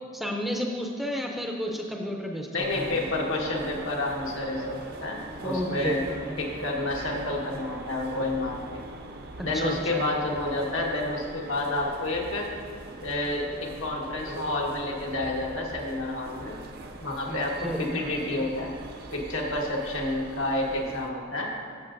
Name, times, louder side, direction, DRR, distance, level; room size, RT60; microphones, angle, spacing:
voice 1, 0.1-2.5 2.7-2.9 5.4-6.2 9.4-10.1 17.3-18.0, equal, ahead, 0 dB, 0.5 m, -32 dB
voice 2, 2.5-6.0 6.4-8.8 9.4-12.5 13.0-16.6 17.0-18.7 19.1-21.5, left 2 dB, 85° left, -1 dB, 1.4 m, -29 dB
sound 1, 2.6-21.1, right 2 dB, 50° right, 0.6 m, -42 dB
13.0 x 7.1 x 2.6 m, 2.2 s
head